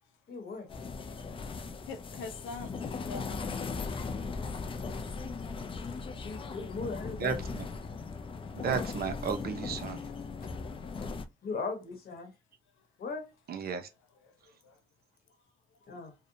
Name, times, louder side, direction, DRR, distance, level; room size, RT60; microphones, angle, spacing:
voice 1, 0.3-0.7 4.9-5.3 5.8-7.4 11.4-12.3 13.0-13.3 15.9-16.1, left 4 dB, 50° left, 1.0 m, -39 dB
sound 1, 0.7-11.2, left 4 dB, 25° left, 0.4 m, -38 dB
voice 2, 1.9-4.0, left 4 dB, 80° left, 0.6 m, -43 dB
voice 3, 7.2-7.7 8.5-10.0 13.5-13.9, right 6 dB, 50° right, 0.6 m, -33 dB
2.7 x 2.1 x 2.6 m
cardioid pair, 90°, 20 cm